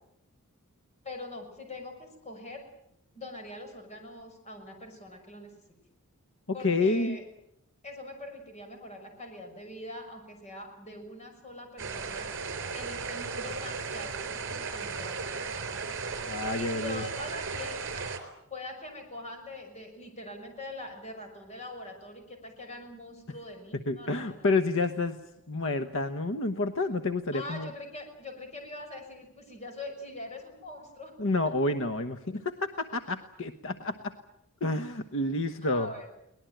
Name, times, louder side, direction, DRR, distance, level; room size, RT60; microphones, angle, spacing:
voice 1, 1.0-2.6 3.1-5.5 6.5-7.2 7.8-12.3 12.7-16.1 16.6-18.1 18.5-24.5 27.3-31.1 35.6-36.1, left 2 dB, 30° left, 4 dB, 6.1 m, -43 dB
voice 2, 6.5-7.2 16.2-17.0 23.9-25.2 25.5-27.7 31.2-34.1 34.6-35.9, left 2 dB, 65° left, 9 dB, 1.1 m, -29 dB
sound 1, 11.8-18.2, right 5 dB, 60° right, 3.9 m, -36 dB
23.0 x 19.5 x 9.1 m, 0.80 s
head